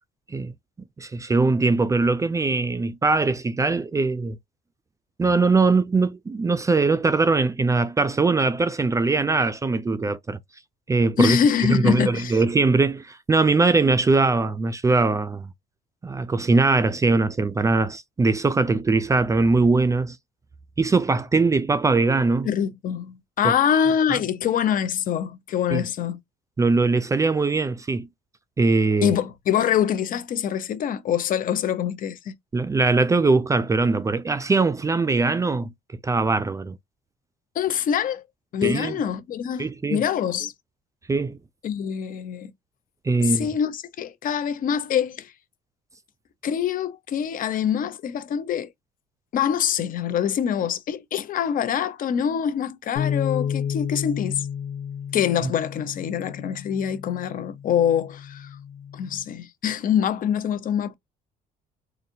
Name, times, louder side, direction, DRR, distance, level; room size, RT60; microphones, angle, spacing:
voice 1, 1.0-4.4 5.2-10.4 10.9-11.4 11.7-15.5 16.0-20.2 20.8-22.5 23.4-23.5 25.7-25.8 26.6-28.1 28.6-29.1 32.5-35.7 36.0-36.8 38.6-39.0 39.6-40.0 41.1-41.4 43.0-43.5 55.4-55.5, right 3 dB, 20° right, 0.4 m, -21 dB
voice 2, 11.2-12.4 22.4-26.2 29.0-32.3 37.5-38.2 38.5-40.5 41.6-42.5 43.2-45.3 46.4-48.7 49.3-54.5 55.1-58.5 58.9-60.9, left 8 dB, 55° left, 0.7 m, -24 dB
sound 1, 53.0-59.2, left 8 dB, 90° left, 1.1 m, -32 dB
4.0 x 2.6 x 2.7 m
cardioid pair, 110°, 17 cm